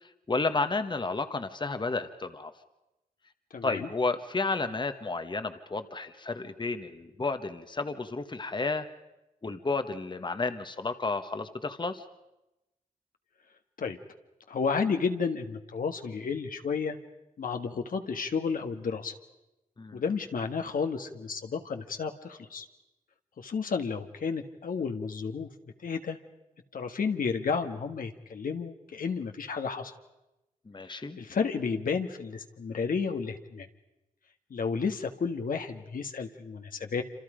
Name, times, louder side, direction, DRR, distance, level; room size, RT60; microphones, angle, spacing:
voice 1, 0.3-2.5 3.6-8.9 9.4-12.0 19.8-20.0 30.7-31.2, left 3 dB, 30° left, 9 dB, 1.3 m, -32 dB
voice 2, 3.5-3.9 13.8-14.0 14.5-17.0 17.4-19.1 19.9-22.7 23.4-25.5 25.8-26.2 26.7-29.9 31.2-33.7 34.5-37.0, left 5 dB, 70° left, 5 dB, 1.6 m, -32 dB
27.0 x 27.0 x 5.1 m, 0.97 s
cardioid pair, 65°, 15 cm